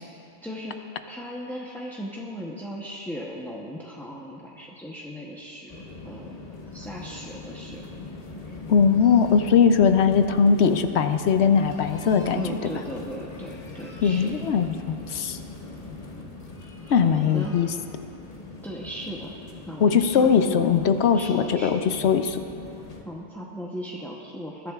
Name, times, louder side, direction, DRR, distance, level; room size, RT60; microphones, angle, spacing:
voice 1, 0.4-0.8 1.1-5.7 6.0-6.4 6.7-7.8 12.3-14.5 16.8-17.6 18.6-19.3 19.7-20.8 21.1-22.0 23.0-24.7, equal, ahead, -3 dB, 0.6 m, -37 dB
sound 1, 5.7-23.0, left 3 dB, 35° left, 1.1 m, -41 dB
voice 2, 8.7-12.4 14.0-15.4 16.9-17.7 19.8-22.4, left 6 dB, 65° left, 8 dB, 0.8 m, -20 dB
21.5 x 11.5 x 2.4 m, 2.8 s
omnidirectional pair, 1.3 m